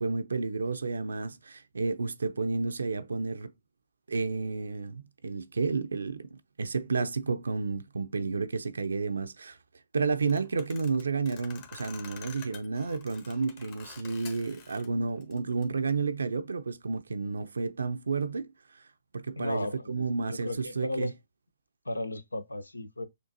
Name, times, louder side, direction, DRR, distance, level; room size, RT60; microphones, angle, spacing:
voice 1, 0.0-3.5 4.1-9.6 9.9-18.5 19.1-21.1, right 4 dB, 75° right, 0.5 m, -31 dB
sound 1, 10.2-14.9 15.2-15.9, left 7 dB, 35° left, 1.0 m, -49 dB
voice 2, 19.4-21.1 21.8-23.1, left 1 dB, 90° left, 0.6 m, -35 dB
6.5 x 2.5 x 2.6 m
figure-of-eight pair, 130°, 0 cm